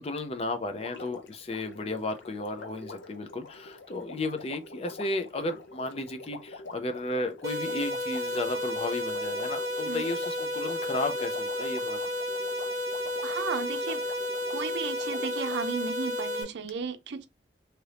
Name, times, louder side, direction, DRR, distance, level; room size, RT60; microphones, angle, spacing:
voice 1, 0.0-12.0, left 2 dB, 30° left, 0.4 m, -34 dB
Water, 0.8-15.8 16.7-16.8, left 3 dB, 80° left, 0.6 m, -46 dB
sound 1, 7.4-16.4, left 1 dB, 20° right, 1.1 m, -32 dB
voice 2, 13.2-14.0 14.5-17.3, right 5 dB, 70° right, 0.5 m, -34 dB
2.8 x 2.5 x 3.2 m
head